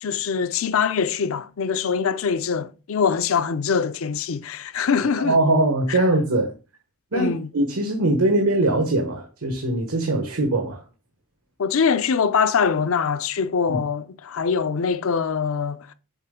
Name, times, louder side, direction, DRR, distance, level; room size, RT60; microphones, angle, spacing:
voice 1, 0.0-5.4 5.9-6.0 7.1-7.5 11.6-15.9, left 6 dB, 70° left, 0.6 m, -23 dB
voice 2, 5.2-6.5 7.1-10.8 13.7-13.8, right 2 dB, 85° right, 1.2 m, -21 dB
7.2 x 4.1 x 3.7 m
head